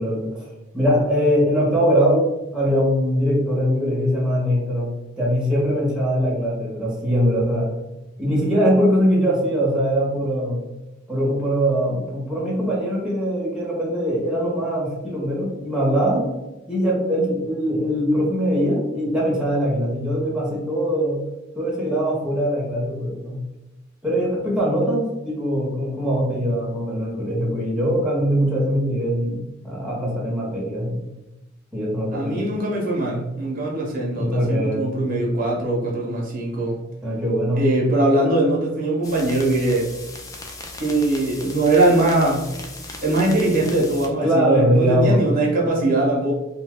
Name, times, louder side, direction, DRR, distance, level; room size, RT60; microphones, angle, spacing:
voice 1, 0.0-2.3 2.5-7.7 8.2-10.6 11.1-16.3 16.7-21.2 21.6-23.4 24.0-31.0 31.7-32.4 34.1-34.9 37.0-37.7 44.2-45.2, equal, 5° right, -5 dB, 0.7 m, -22 dB
voice 2, 32.1-36.8 37.5-39.9 40.8-42.5 43.0-46.3, right 2 dB, 45° right, -3 dB, 0.6 m, -21 dB
sound 1, 39.0-44.1, left 2 dB, 15° left, 0.3 m, -38 dB
2.6 x 2.1 x 3.5 m, 0.99 s
head